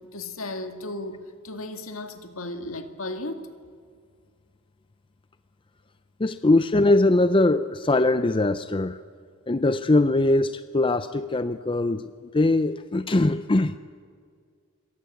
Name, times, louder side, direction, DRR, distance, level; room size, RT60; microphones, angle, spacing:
voice 1, 0.1-3.4, left 2 dB, 65° left, 2.2 m, -35 dB
voice 2, 6.2-9.0 9.5-13.7, left 2 dB, 25° left, 0.6 m, -21 dB
27.0 x 22.5 x 8.4 m
head